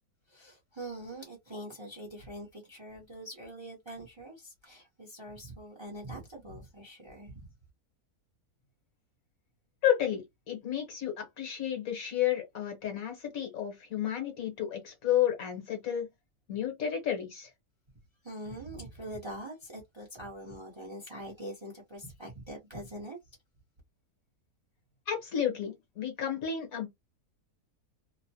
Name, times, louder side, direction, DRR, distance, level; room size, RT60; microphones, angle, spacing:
voice 1, 0.3-7.5 18.2-23.2, right 1 dB, 25° right, 0.6 m, -43 dB
voice 2, 9.8-16.1 16.5-17.5 25.1-26.9, left 10 dB, 70° left, 1.5 m, -31 dB
2.9 x 2.1 x 2.7 m
omnidirectional pair, 1.6 m